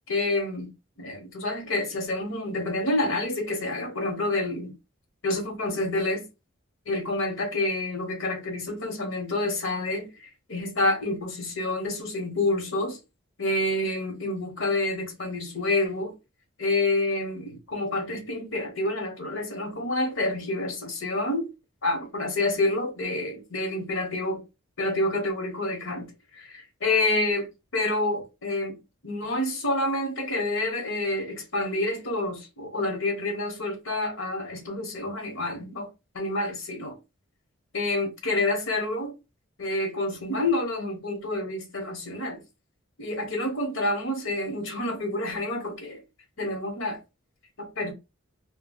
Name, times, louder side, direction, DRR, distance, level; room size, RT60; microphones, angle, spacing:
voice 1, 0.1-0.7 1.0-4.7 5.2-6.3 6.9-13.0 13.4-16.1 16.6-21.5 21.8-24.4 24.8-26.1 26.4-27.4 27.7-28.8 29.0-35.9 36.1-37.0 37.7-39.1 39.6-42.4 43.0-46.0 46.4-47.0 47.6-47.9, left 2 dB, 75° left, 1.0 m, -28 dB
2.2 x 2.2 x 3.6 m
head